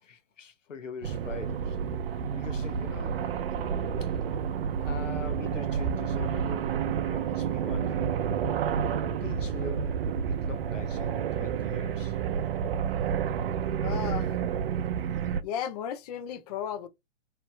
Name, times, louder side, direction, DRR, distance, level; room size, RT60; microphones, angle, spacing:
voice 1, 0.0-1.8 2.0-4.1 4.8-10.0 10.3-12.2, left 5 dB, 90° left, 0.7 m, -44 dB
sound 1, 1.0-15.4, right 7 dB, 55° right, 0.5 m, -30 dB
voice 2, 13.8-14.3 15.4-16.9, left 9 dB, 35° left, 0.4 m, -34 dB
3.2 x 2.8 x 3.1 m
figure-of-eight pair, 120°, 36 cm